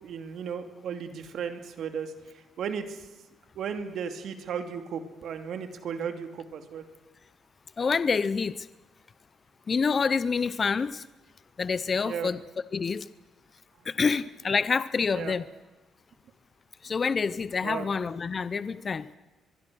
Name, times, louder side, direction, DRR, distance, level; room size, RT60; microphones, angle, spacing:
voice 1, 0.0-3.1 3.5-6.9 12.0-12.3 15.1-15.4 17.6-17.9, right 7 dB, 70° right, 7 dB, 2.6 m, -35 dB
voice 2, 7.8-8.7 9.7-11.0 11.6-12.4 12.7-13.1 13.8-15.4 16.8-19.1, left 5 dB, 40° left, 16 dB, 0.7 m, -27 dB
24.0 x 22.5 x 6.3 m, 1.2 s
cardioid pair, 90°, 0 cm